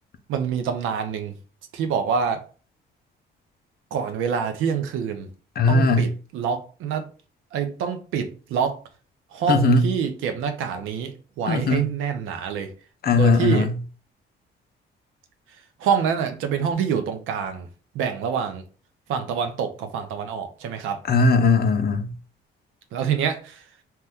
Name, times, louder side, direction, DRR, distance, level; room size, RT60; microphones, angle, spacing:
voice 1, 0.3-1.3 1.7-2.4 3.9-5.3 5.7-6.1 6.3-7.1 7.5-8.8 9.3-12.7 13.1-13.7 15.8-17.7 17.9-18.6 19.1-21.0 22.9-23.6, right 7 dB, 90° right, 0.6 m, -26 dB
voice 2, 5.6-6.1 9.5-9.9 11.5-11.8 13.0-13.7 21.1-22.1, left 3 dB, 50° left, 0.5 m, -19 dB
2.9 x 2.2 x 3.4 m
cardioid pair, 90°, 20 cm